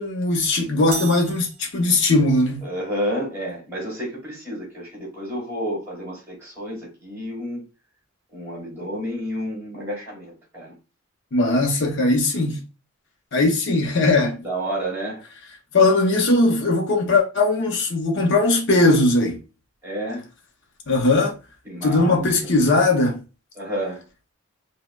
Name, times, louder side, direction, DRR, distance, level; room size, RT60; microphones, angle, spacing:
voice 1, 0.0-2.7 11.3-12.6 13.3-14.4 15.7-19.4 20.9-21.3 21.8-23.2, left 2 dB, 55° left, 0.7 m, -19 dB
sound 1, 0.9-2.3, right 5 dB, 70° right, 0.5 m, -36 dB
voice 2, 2.6-7.6 8.3-10.7 13.7-13.8 14.4-15.2 19.8-20.3 21.7-22.3 23.6-24.0, equal, 10° right, 2.0 m, -30 dB
4.9 x 2.1 x 2.2 m
head